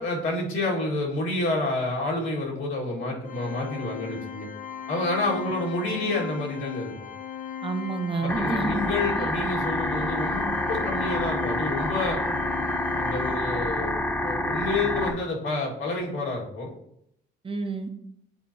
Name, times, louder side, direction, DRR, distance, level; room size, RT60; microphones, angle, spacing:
voice 1, 0.0-4.5 4.9-6.9 8.2-12.2 13.0-16.7, left 2 dB, 75° left, -3 dB, 2.0 m, -29 dB
Organ, 3.3-14.0, left 8 dB, 40° left, 0.5 m, -37 dB
voice 2, 7.6-8.8 9.2-9.3 17.4-17.9, right 4 dB, 25° right, 7 dB, 0.8 m, -29 dB
sound 1, 8.3-15.1, left 1 dB, 10° left, 1.0 m, -28 dB
9.7 x 4.1 x 2.8 m, 0.75 s
cardioid pair, 90°, 20 cm